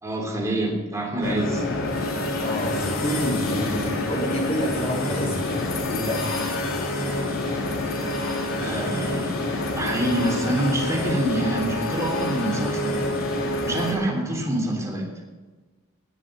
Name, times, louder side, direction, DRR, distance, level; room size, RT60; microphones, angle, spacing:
voice 1, 0.0-1.6 8.6-9.5 9.7-12.9 13.6-15.1, right 1 dB, 15° right, -1 dB, 3.3 m, -26 dB
sound 1, 1.2-13.9, left 2 dB, 80° left, 3.5 m, -27 dB
voice 2, 2.4-6.3, equal, 30° left, -2 dB, 3.8 m, -28 dB
19.5 x 7.7 x 6.8 m, 1.3 s
head